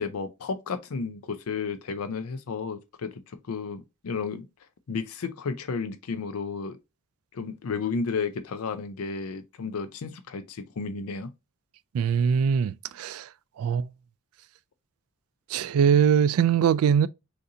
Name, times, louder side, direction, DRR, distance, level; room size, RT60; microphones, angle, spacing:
voice 1, 0.0-4.5 4.9-6.8 7.3-11.3, left 5 dB, 80° left, 0.5 m, -32 dB
voice 2, 11.9-13.3 13.6-13.9 15.5-17.1, right 7 dB, 75° right, 0.3 m, -22 dB
6.5 x 2.7 x 2.7 m
head